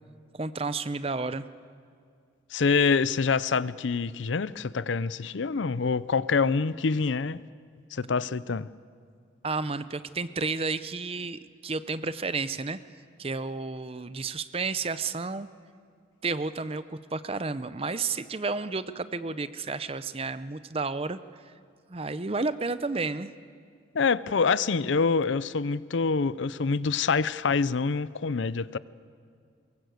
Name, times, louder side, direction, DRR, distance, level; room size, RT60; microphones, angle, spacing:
voice 1, 0.3-1.5 9.4-12.8 13.2-15.5 16.2-21.5 21.9-23.3, right 3 dB, 30° right, 0.6 m, -31 dB
voice 2, 2.5-7.4 7.9-8.7 23.9-28.8, left 4 dB, 75° left, 0.6 m, -26 dB
23.5 x 22.5 x 7.9 m
head